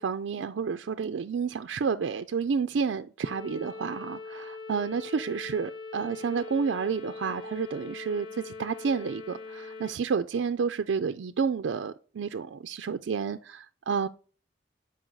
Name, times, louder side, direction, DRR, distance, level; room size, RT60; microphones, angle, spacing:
voice 1, 0.0-14.1, right 5 dB, 70° right, 0.4 m, -30 dB
sound 1, 3.2-9.9, left 4 dB, 80° left, 0.9 m, -42 dB
7.5 x 5.2 x 3.9 m
head